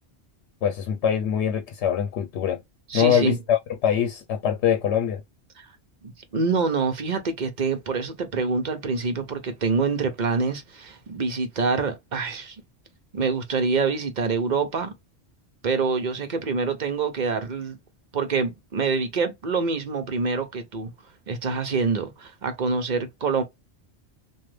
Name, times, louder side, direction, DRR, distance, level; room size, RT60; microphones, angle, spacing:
voice 1, 0.6-2.6 2.9-5.2, left 8 dB, 80° left, 0.9 m, -23 dB
voice 2, 2.9-3.4 5.6-5.7 6.0-12.6 13.1-14.9 15.6-17.8 18.1-20.9 21.3-23.4, right 4 dB, 45° right, 0.8 m, -26 dB
3.2 x 2.3 x 3.1 m
omnidirectional pair, 1.2 m